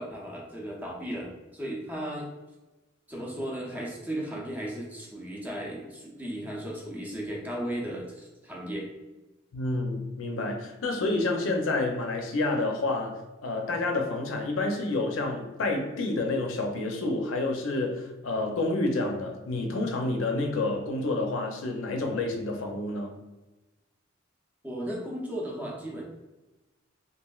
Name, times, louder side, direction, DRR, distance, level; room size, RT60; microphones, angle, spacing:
voice 1, 0.0-2.3 3.1-8.9 24.6-26.0, right 1 dB, 10° right, -3 dB, 0.5 m, -35 dB
voice 2, 9.5-23.1, left 2 dB, 90° left, 2 dB, 0.5 m, -29 dB
3.0 x 2.4 x 2.3 m, 1.1 s
head